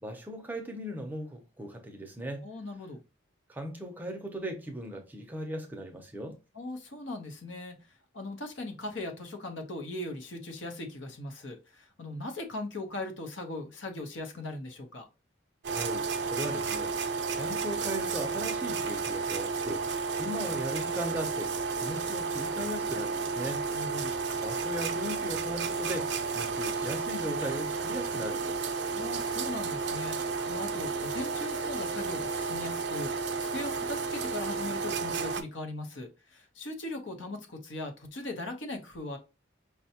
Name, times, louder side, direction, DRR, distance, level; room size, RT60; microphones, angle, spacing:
voice 1, 0.0-2.4 3.5-6.4 15.7-23.6 24.4-28.7, equal, 10° right, 0.6 m, -38 dB
voice 2, 2.4-3.0 6.5-7.8 8.1-15.1 23.7-24.1 28.9-39.2, left 2 dB, 75° left, 0.9 m, -39 dB
sound 1, 15.6-35.4, right 4 dB, 60° right, 0.5 m, -32 dB
5.4 x 2.2 x 2.8 m
head